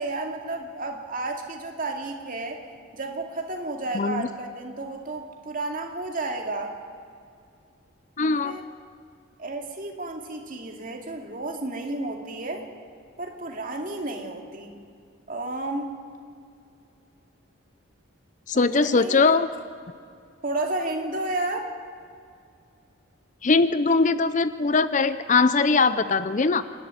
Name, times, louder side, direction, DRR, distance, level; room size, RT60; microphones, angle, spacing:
voice 1, 0.0-2.6 2.9-6.7 8.4-8.6 9.4-12.6 13.2-14.8 15.3-15.9 18.5-19.4 20.4-21.7, right 2 dB, 40° right, 2 dB, 2.3 m, -32 dB
voice 2, 3.9-4.3 8.2-8.6 18.5-19.5 23.4-26.6, left 4 dB, 35° left, 13 dB, 0.5 m, -21 dB
26.0 x 11.5 x 9.6 m, 2.3 s
head